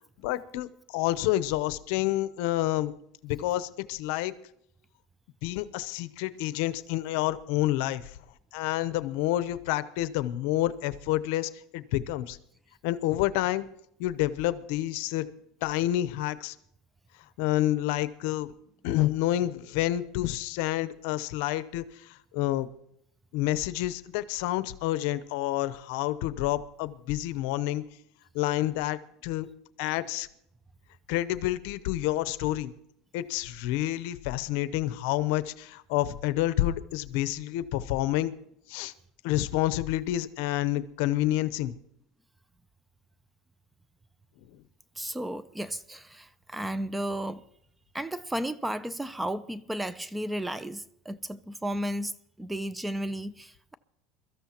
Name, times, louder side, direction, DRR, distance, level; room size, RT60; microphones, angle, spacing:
voice 1, 0.2-2.9 3.2-4.3 5.4-8.1 8.5-12.4 12.8-13.7 14.0-15.3 15.6-16.5 17.4-18.5 18.8-22.7 23.3-27.8 28.3-29.5 29.8-30.3 31.1-32.7 33.1-38.3 38.7-38.9 39.2-41.7, left 15 dB, 75° left, 0.7 m, -28 dB
voice 2, 45.0-47.4 47.9-53.8, right 1 dB, 5° right, 0.5 m, -34 dB
23.0 x 13.5 x 2.9 m
supercardioid pair, 130°, 0 cm